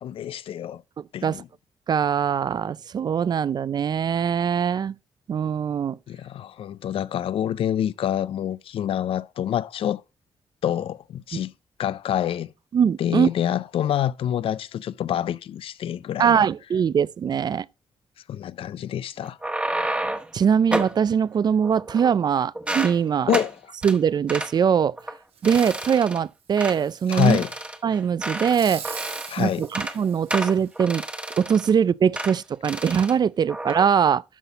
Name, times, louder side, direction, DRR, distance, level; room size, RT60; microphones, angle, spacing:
voice 1, 0.0-0.8 1.1-1.5 6.1-10.0 10.6-11.5 11.8-12.5 13.0-16.5 18.3-19.4 23.3-23.6 27.1-27.5 29.3-29.7, left 10 dB, 70° left, 0.4 m, -26 dB
voice 2, 1.9-5.0 5.3-6.0 11.3-11.4 12.7-13.3 16.2-17.7 20.3-23.3 23.8-25.0 25.4-27.4 27.8-29.1 29.4-31.0 31.4-34.2, right 7 dB, 45° right, 0.3 m, -22 dB
sound 1, 19.2-20.3 20.7-21.0 21.6-22.3 22.5-23.0 23.3-23.5 23.8-24.0 24.3-24.5 25.0-25.2 25.4-26.2 26.6-26.8 27.1-28.6 28.8-29.3 29.6-30.0 30.3-31.7 32.1-32.4 32.6-33.1 33.5-33.8, right 1 dB, 10° right, 1.2 m, -30 dB
Fireworks, 25.4-26.0 26.5-27.6 28.3-30.7 31.3-31.4, right 7 dB, 85° right, 1.5 m, -42 dB
12.0 x 4.2 x 4.0 m
cardioid pair, 105°, 10 cm